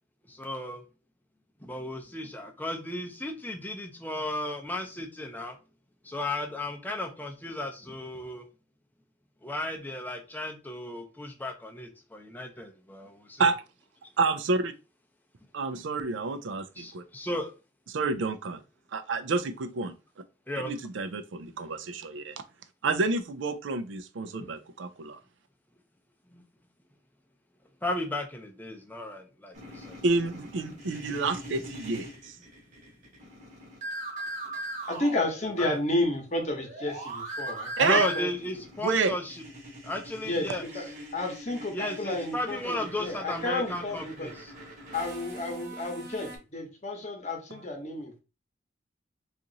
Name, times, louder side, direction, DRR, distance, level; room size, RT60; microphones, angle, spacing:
voice 1, 0.3-0.8 1.6-5.6 6.0-8.5 9.4-13.1 13.4-13.5 16.8-17.5 20.5-20.7 24.4-24.5 26.3-26.4 27.8-30.0 30.7-30.8 35.4-35.8 37.8-39.4 39.8-40.8 41.7-44.5, left 1 dB, 10° left, 0.5 m, -35 dB
voice 2, 14.2-14.7 15.5-17.0 17.9-18.6 18.9-19.9 20.6-22.3 22.8-25.2 30.0-32.3 37.8-38.1 38.8-39.1, right 4 dB, 80° right, 0.5 m, -29 dB
sound 1, 29.5-35.9 36.1-46.4, right 1 dB, 40° right, 1.1 m, -41 dB
voice 3, 34.9-38.3 40.2-40.5 40.7-40.9 41.1-44.3 44.9-48.2, left 2 dB, 35° left, 0.9 m, -31 dB
2.9 x 2.5 x 3.8 m
head